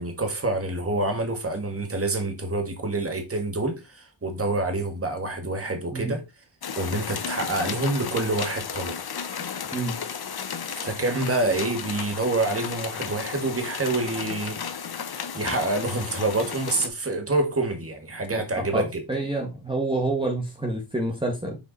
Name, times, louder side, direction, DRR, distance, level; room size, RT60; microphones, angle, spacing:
voice 1, 0.0-6.2 6.8-9.0 10.8-14.6 15.3-19.0, right 2 dB, 30° right, 2.0 m, -27 dB
sound 1, 6.6-16.9, left 7 dB, 50° left, 1.1 m, -34 dB
voice 2, 18.3-21.6, right 2 dB, 10° right, 1.8 m, -28 dB
7.2 x 4.6 x 4.2 m
cardioid pair, 90°, 49 cm